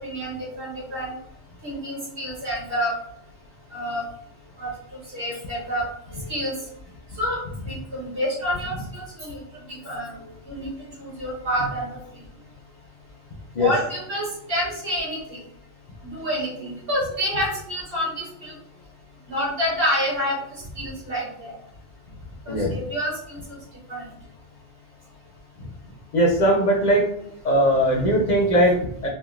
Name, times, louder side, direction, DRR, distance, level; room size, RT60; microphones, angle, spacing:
voice 1, 0.0-1.1 1.6-2.9 3.7-4.0 4.6-4.7 5.1-5.9 6.1-6.5 7.2-7.4 7.7-9.4 9.8-10.2 10.5-10.7 11.0-11.9 13.6-15.4 16.0-18.5 19.3-20.4 20.8-21.5 22.5-23.4 23.9-24.0, equal, 65° right, -6 dB, 1.7 m, -28 dB
voice 2, 26.1-27.1 27.4-29.1, equal, 50° left, -2 dB, 0.6 m, -19 dB
3.0 x 2.3 x 2.4 m, 0.73 s
omnidirectional pair, 1.0 m